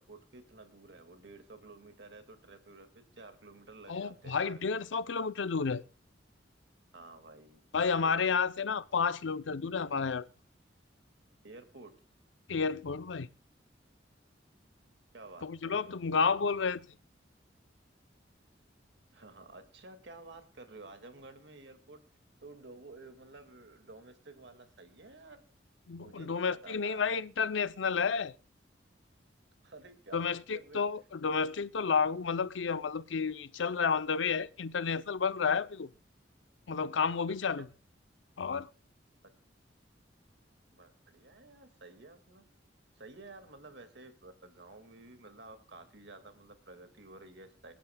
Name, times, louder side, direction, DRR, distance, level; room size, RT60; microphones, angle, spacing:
voice 1, 0.0-4.7 6.9-7.7 8.0-8.2 11.4-11.9 15.1-15.5 15.8-16.0 19.1-22.0 22.4-25.4 26.0-27.0 29.6-30.9 40.7-42.4 42.9-47.7, right 2 dB, 70° right, 2.1 m, -52 dB
voice 2, 3.9-5.8 7.7-10.2 12.5-13.3 15.4-16.9 25.9-28.3 30.1-35.9 36.7-37.7 38.4-38.7, left 5 dB, 90° left, 0.6 m, -31 dB
27.0 x 10.0 x 2.3 m
head